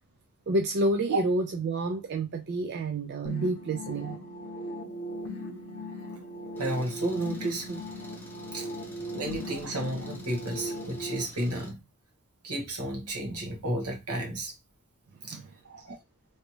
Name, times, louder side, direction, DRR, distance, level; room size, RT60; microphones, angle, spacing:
voice 1, 0.5-4.2 15.3-15.8, right 2 dB, 50° right, 0.4 m, -29 dB
sound 1, 3.2-11.2, equal, 50° left, 0.8 m, -38 dB
Engine, 6.6-11.7, left 1 dB, 10° left, 0.7 m, -49 dB
voice 2, 6.6-7.8 8.5-8.7 9.1-11.8 12.4-14.5 15.3-15.4 15.6-16.0, right 1 dB, 80° right, 1.3 m, -32 dB
3.2 x 2.7 x 2.9 m
head